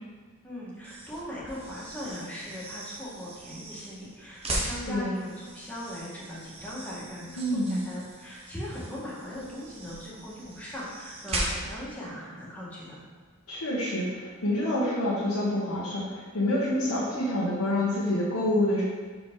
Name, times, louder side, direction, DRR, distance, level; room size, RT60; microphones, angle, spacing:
voice 1, 0.4-13.0, equal, 5° left, -7 dB, 1.5 m, -39 dB
sound 1, 0.8-11.9, right 1 dB, 25° right, 0.9 m, -39 dB
voice 2, 7.4-7.8 13.5-18.8, left 1 dB, 90° left, -9 dB, 1.3 m, -27 dB
6.0 x 4.7 x 3.7 m, 1.4 s
head